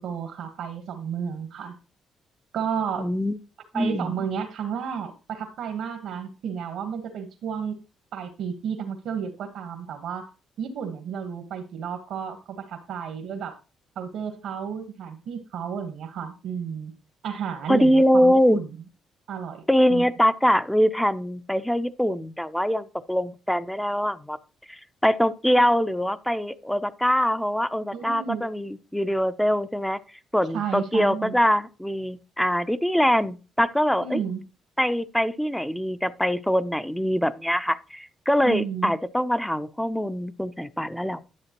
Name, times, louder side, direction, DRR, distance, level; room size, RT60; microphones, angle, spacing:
voice 1, 0.0-1.8 2.5-3.1 3.7-7.8 8.1-10.3 10.6-13.6 14.0-16.9 17.2-18.7 19.3-19.6 19.9-20.0 27.9-28.4 30.5-31.3 34.0-34.4 38.4-38.9, right 7 dB, 75° right, 1.2 m, -32 dB
voice 2, 3.0-3.4 3.7-4.2 17.7-18.6 19.7-24.4 24.7-30.0 30.3-34.2 34.8-41.2, equal, 5° left, 0.6 m, -23 dB
11.0 x 7.3 x 3.0 m
cardioid pair, 90°, 0 cm